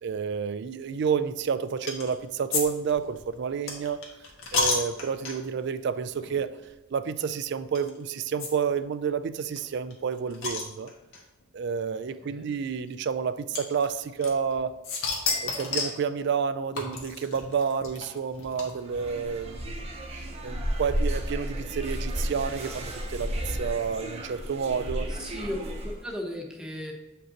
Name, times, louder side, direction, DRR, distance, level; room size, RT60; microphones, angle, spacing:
voice 1, 0.0-4.0 4.5-6.5 6.9-10.9 11.5-14.7 15.4-19.9 20.1-25.1, right 6 dB, 60° right, 13 dB, 0.4 m, -30 dB
sound 1, 1.9-2.1 2.5-5.6 6.2-6.4 6.6-6.7 7.7-7.9 8.4-8.5 8.8-8.9 9.0-9.1 9.6-11.2 12.1-12.2 13.5-14.5 14.8-16.0 16.8-19.0, left 4 dB, 90° left, 1.4 m, -31 dB
voice 2, 12.2-12.5 25.1-26.9, left 1 dB, 5° right, -1 dB, 0.8 m, -36 dB
sound 2, 18.9-26.0, equal, 30° right, 0.8 m, -33 dB
7.8 x 5.1 x 2.9 m, 1.1 s
head